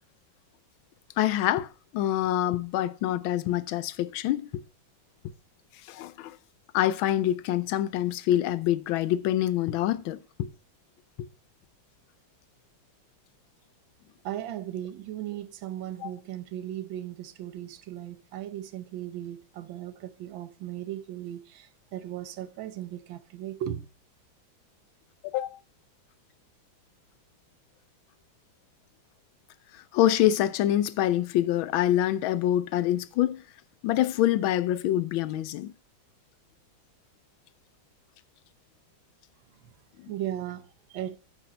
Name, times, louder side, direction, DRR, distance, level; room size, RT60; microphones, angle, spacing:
voice 1, 1.2-4.6 5.9-6.4 6.7-10.5 11.2-11.3 16.0-16.1 25.3-25.6 29.7-33.4 33.8-35.7, left 12 dB, 85° left, 1.4 m, -26 dB
voice 2, 14.2-23.9 39.6-39.7 40.1-41.2, right 12 dB, 80° right, 1.6 m, -37 dB
9.1 x 6.3 x 5.3 m
omnidirectional pair, 2.2 m